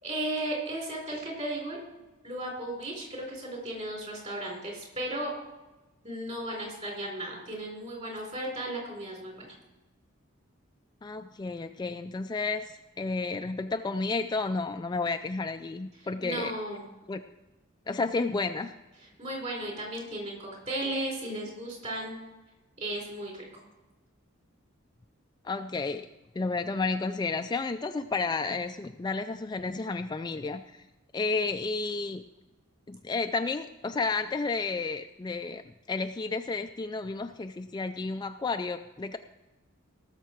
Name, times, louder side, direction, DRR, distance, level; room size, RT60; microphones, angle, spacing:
voice 1, 0.0-1.8 2.2-5.3 6.0-9.5 16.2-16.8 19.2-22.2 22.8-23.4, right 1 dB, 35° right, -1 dB, 4.2 m, -35 dB
voice 2, 11.0-16.5 17.1-17.2 17.9-18.7 25.4-26.1 26.3-30.8 31.1-32.2 32.9-35.6 35.9-39.2, left 3 dB, 20° left, 7 dB, 0.3 m, -31 dB
18.5 x 6.7 x 4.6 m, 1.1 s
head